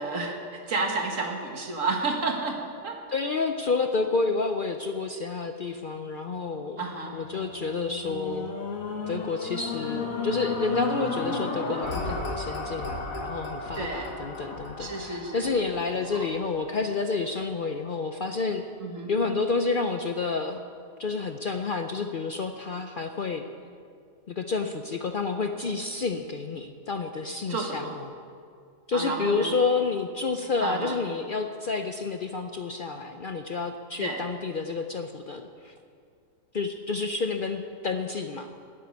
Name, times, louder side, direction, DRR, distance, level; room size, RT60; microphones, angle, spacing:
voice 1, 0.0-3.0 6.8-7.2 13.8-14.1 14.8-15.5 16.1-16.3 18.8-19.1 27.5-27.9 28.9-29.5 30.6-31.0 34.0-34.3, right 3 dB, 65° right, 2 dB, 2.0 m, -31 dB
voice 2, 3.1-6.8 7.1-8.5 9.1-18.6 19.1-20.6 21.0-23.4 24.3-28.1 28.9-35.7 36.5-38.5, left 4 dB, 50° left, 6 dB, 0.6 m, -29 dB
sound 1, 6.8-17.1 17.7-17.8, left 3 dB, 80° left, 1.9 m, -34 dB
13.0 x 8.6 x 9.6 m, 2.3 s
omnidirectional pair, 1.4 m